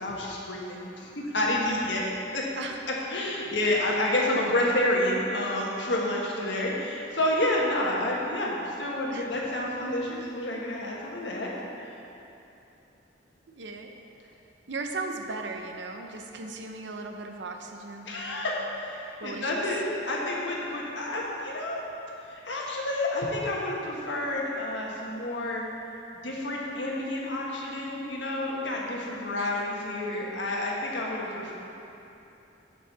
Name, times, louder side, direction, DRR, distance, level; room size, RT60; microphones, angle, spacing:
voice 1, 0.0-2.0 2.3-2.4 3.1-11.5 18.1-21.8 22.3-25.6 26.2-31.5, left 1 dB, 75° left, -3 dB, 1.4 m, -29 dB
voice 2, 13.5-14.0 14.7-18.4 19.2-19.6 29.3-29.7, right 3 dB, 70° right, 3 dB, 0.7 m, -37 dB
7.2 x 5.3 x 6.7 m, 2.9 s
head